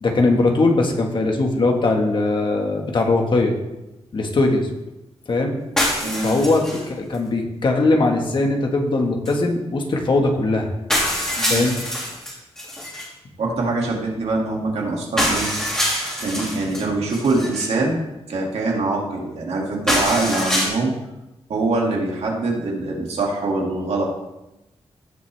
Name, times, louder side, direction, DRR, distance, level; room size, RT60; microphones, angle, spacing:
voice 1, 0.0-3.5 4.1-4.7 5.3-5.6 6.2-10.7 11.5-11.7, left 2 dB, 50° left, 1 dB, 1.6 m, -20 dB
sound 1, 5.8-6.8 7.1-7.2 9.3-9.4 10.3-10.4 10.9-13.1 15.2-16.8 17.1-17.7 19.9-20.7, equal, 5° left, 3.3 m, -24 dB
voice 2, 6.0-6.3 11.4-11.7 13.4-15.5 16.2-18.0 18.3-20.9 21.5-24.0, right 2 dB, 85° right, -1 dB, 2.4 m, -23 dB
16.5 x 6.2 x 3.4 m, 0.97 s
wide cardioid pair, 135°, 11 cm